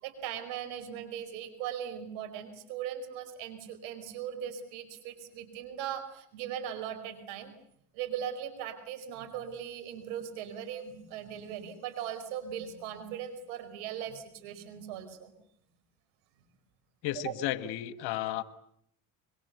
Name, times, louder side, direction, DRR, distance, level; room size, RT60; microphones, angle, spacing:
voice 1, 0.0-7.5 7.9-15.3 17.2-17.3, right 9 dB, 80° right, 9 dB, 4.9 m, -39 dB
voice 2, 17.0-18.4, left 14 dB, 70° left, 14 dB, 1.7 m, -33 dB
25.5 x 23.0 x 8.3 m, 0.69 s
hypercardioid pair, 65°, 40 cm